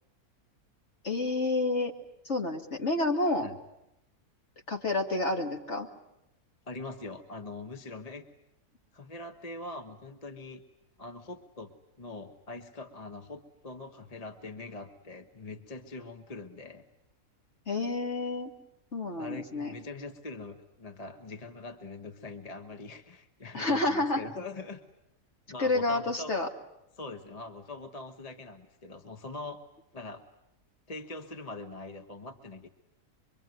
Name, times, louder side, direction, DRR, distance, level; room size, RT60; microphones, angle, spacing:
voice 1, 1.0-1.9 2.2-3.5 4.7-5.9 17.7-18.5 18.9-19.7 23.5-24.2 25.6-26.5, left 2 dB, 50° left, 3 dB, 2.5 m, -29 dB
voice 2, 6.7-8.2 8.9-10.6 11.0-16.8 19.2-24.8 25.5-26.3 27.0-29.6 29.9-30.2 30.9-32.7, left 3 dB, 25° left, 7 dB, 1.2 m, -43 dB
24.0 x 24.0 x 9.3 m, 0.83 s
omnidirectional pair, 1.6 m